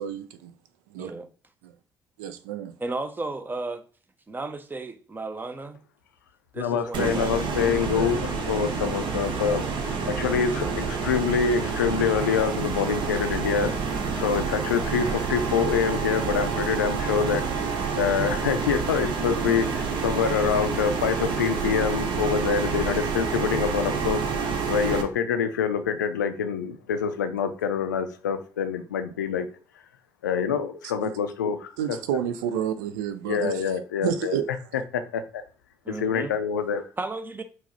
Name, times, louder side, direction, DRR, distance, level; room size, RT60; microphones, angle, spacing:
voice 1, 0.0-0.4 1.0-1.1 1.6-1.7 2.2-2.7 31.0-31.1 31.8-33.6 34.0-34.5, right 9 dB, 75° right, 0.4 m, -29 dB
voice 2, 2.8-3.8 4.3-5.8 6.5-8.2 9.7-9.9 35.8-36.3 37.0-37.4, right 3 dB, 20° right, 0.6 m, -34 dB
voice 3, 6.6-9.6 10.1-13.7 14.1-29.5 30.2-31.7 33.3-34.4 34.9-35.4 35.9-36.9, left 7 dB, 85° left, 0.4 m, -26 dB
sound 1, 6.9-25.0, right 5 dB, 55° right, 0.8 m, -28 dB
4.6 x 2.2 x 4.1 m
figure-of-eight pair, 50°, 10 cm